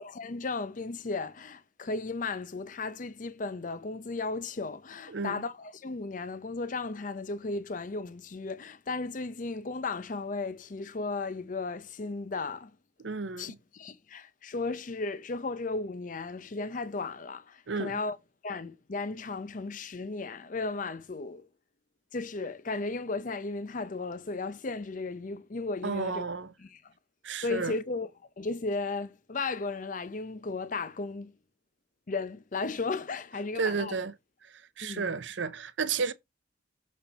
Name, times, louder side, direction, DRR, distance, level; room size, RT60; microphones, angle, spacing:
voice 1, 0.0-12.7 13.4-18.2 18.4-21.5 22.1-26.2 26.6-26.9 27.4-28.1 28.4-31.3 32.1-34.0 34.8-35.2, left 3 dB, 45° left, 0.6 m, -35 dB
voice 2, 5.1-5.4 13.0-13.6 17.7-18.0 25.8-26.5 27.2-27.7 33.6-34.1 34.4-36.1, right 4 dB, 70° right, 0.8 m, -32 dB
7.0 x 4.2 x 4.3 m
head